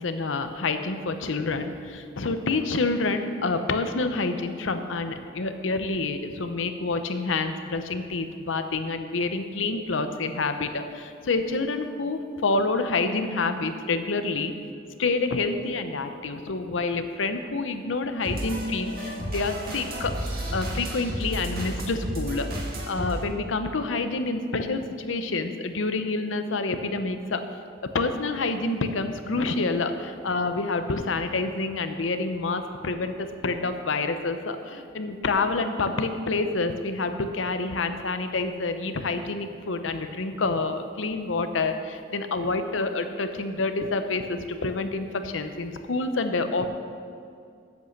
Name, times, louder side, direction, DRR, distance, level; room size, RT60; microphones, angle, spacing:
voice 1, 0.0-14.5 15.0-27.4 27.9-46.7, left 3 dB, 80° left, 8 dB, 0.7 m, -28 dB
sound 1, 18.2-23.2, equal, 50° right, 1.8 m, -32 dB
8.3 x 8.2 x 6.5 m, 2.3 s
head